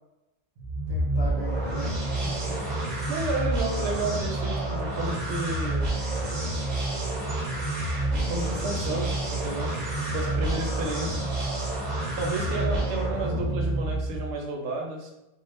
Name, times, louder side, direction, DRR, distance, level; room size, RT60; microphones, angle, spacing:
sound 1, 0.6-14.3, right 2 dB, 50° right, 0.6 m, -28 dB
voice 1, 0.9-2.6 2.9-3.1 12.5-12.8, equal, 30° left, -6 dB, 0.6 m, -39 dB
voice 2, 3.1-6.0 8.1-9.7 10.0-11.3 12.2-15.1, right 2 dB, 75° right, 1 dB, 0.9 m, -32 dB
2.2 x 2.0 x 3.1 m, 0.95 s
omnidirectional pair, 1.2 m